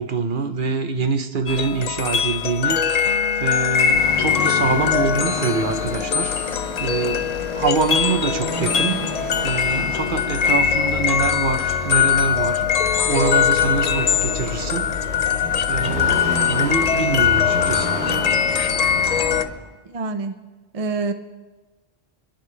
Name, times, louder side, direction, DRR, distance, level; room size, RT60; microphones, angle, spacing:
voice 1, 0.0-6.3 6.8-9.0 9.4-12.7 13.0-14.9 15.7-17.9, right 4 dB, 55° right, 8 dB, 1.0 m, -25 dB
sound 1, 1.5-19.4, left 8 dB, 50° left, 0.5 m, -21 dB
sound 2, 3.9-19.4, left 1 dB, 85° right, 5.4 m, -31 dB
voice 2, 19.9-20.4 20.7-21.1, right 4 dB, 40° right, 7 dB, 0.7 m, -26 dB
30.0 x 10.5 x 3.3 m, 1.3 s
omnidirectional pair, 1.1 m